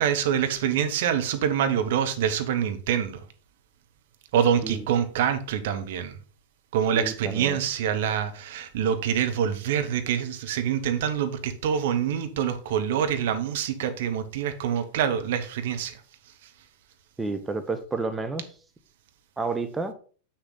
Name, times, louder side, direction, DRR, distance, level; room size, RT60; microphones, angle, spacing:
voice 1, 0.0-3.2 4.3-6.1 6.7-16.0, right 8 dB, 55° right, 1.1 m, -26 dB
voice 2, 6.9-7.6 17.2-18.4 19.4-19.9, right 3 dB, 10° right, 0.9 m, -30 dB
7.9 x 6.4 x 4.0 m
figure-of-eight pair, 90°, 0 cm